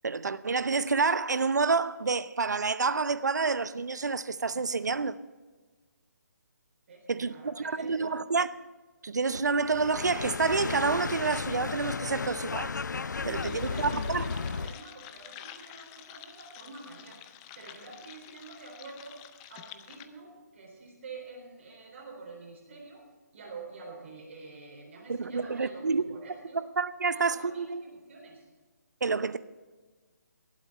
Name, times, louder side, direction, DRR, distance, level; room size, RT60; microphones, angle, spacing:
voice 1, 0.0-5.2 7.1-8.7 9.0-12.7 13.2-14.2 25.1-26.0 26.8-27.8 29.0-29.4, right 4 dB, 70° right, 0.7 m, -28 dB
voice 2, 6.9-8.1 13.1-17.2 17.6-19.2 19.5-23.0 23.3-26.6 27.1-28.5, right 3 dB, 45° right, 3.9 m, -47 dB
sound 1, 9.6-14.8, left 5 dB, 80° left, 0.4 m, -34 dB
sound 2, 13.4-20.1, left 11 dB, 20° left, 0.5 m, -49 dB
20.0 x 8.3 x 4.2 m
figure-of-eight pair, 150°, 10 cm